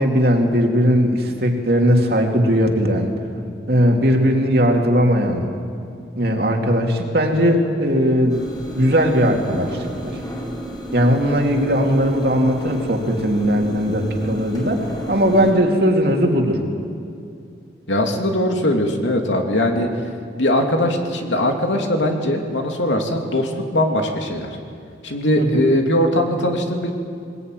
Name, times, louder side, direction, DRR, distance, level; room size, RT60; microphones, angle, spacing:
voice 1, 0.0-3.2 3.7-5.5 6.2-8.4 8.7-10.2 10.9-16.6 25.4-25.6, equal, 55° right, 2 dB, 2.8 m, -18 dB
sound 1, 8.3-15.5, equal, 20° left, 4.3 m, -32 dB
voice 2, 17.9-19.9 20.4-24.5 25.0-26.9, left 1 dB, 85° left, 3 dB, 2.8 m, -20 dB
21.5 x 20.0 x 9.2 m, 2.5 s
head